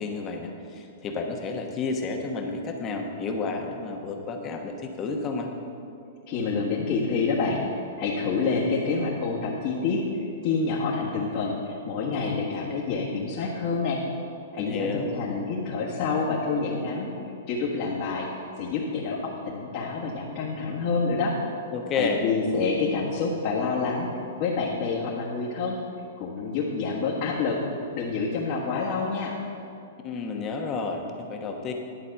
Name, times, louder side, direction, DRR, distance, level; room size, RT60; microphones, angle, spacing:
voice 1, 0.0-5.5 14.6-15.1 21.7-22.2 30.0-31.7, left 4 dB, 25° left, 3 dB, 1.1 m, -31 dB
voice 2, 6.3-7.6 8.0-14.0 14.5-17.1 17.5-18.3 18.6-21.3 21.9-24.1 24.4-25.8 26.2-27.6 27.9-29.3, left 4 dB, 45° left, -6 dB, 1.5 m, -27 dB
11.0 x 4.2 x 7.8 m, 2.6 s
hypercardioid pair, 145°, 0 cm